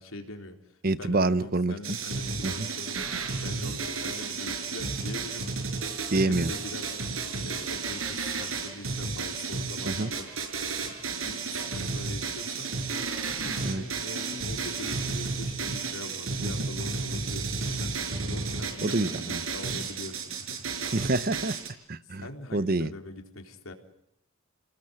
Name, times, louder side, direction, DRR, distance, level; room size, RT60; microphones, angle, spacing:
voice 1, 0.0-3.1 3.4-5.9 6.2-7.0 7.4-10.3 10.8-20.7 22.2-23.7, left 2 dB, 90° left, 4 dB, 4.0 m, -43 dB
voice 2, 0.8-1.7 2.4-2.5 6.1-6.5 9.8-10.1 13.6-13.8 16.4-16.7 18.8-19.4 20.9-21.6 21.9-22.3 22.5-22.9, right 2 dB, 45° right, 14 dB, 1.0 m, -27 dB
sound 1, 1.8-21.7, right 4 dB, 90° right, 5.2 m, -33 dB
29.5 x 19.5 x 7.9 m, 0.76 s
head